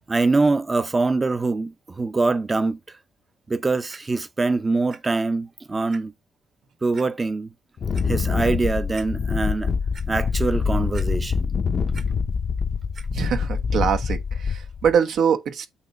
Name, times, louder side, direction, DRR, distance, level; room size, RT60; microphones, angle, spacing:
voice 1, 0.1-2.8 3.5-6.1 6.8-7.5 8.1-9.7 10.1-11.5, right 3 dB, 25° right, 0.8 m, -23 dB
Clock, 3.9-4.0 4.9-5.0 5.4-5.5 5.9-6.0 6.9-7.1 7.7-8.0 8.6-8.7 8.9-9.1 9.5-10.1 10.9-11.5 11.7-12.1 12.9-13.1 13.8-13.9, right 5 dB, 50° right, 1.4 m, -44 dB
Wind, 7.8-14.9, left 5 dB, 50° left, 0.8 m, -25 dB
voice 2, 13.1-15.7, right 7 dB, 70° right, 1.2 m, -23 dB
8.4 x 3.1 x 4.6 m
cardioid pair, 90°, 0 cm